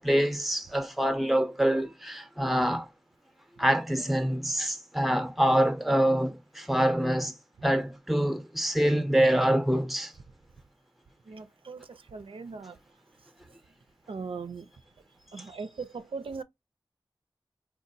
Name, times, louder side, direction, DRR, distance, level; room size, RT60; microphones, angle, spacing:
voice 1, 0.0-2.9 3.6-7.3 7.6-10.1 15.4-15.5, right 1 dB, ahead, 0.6 m, -25 dB
voice 2, 11.3-11.8 12.1-12.8 14.1-14.7 15.3-16.4, right 4 dB, 85° right, 0.4 m, -39 dB
3.8 x 2.3 x 2.6 m
wide cardioid pair, 55°, 9 cm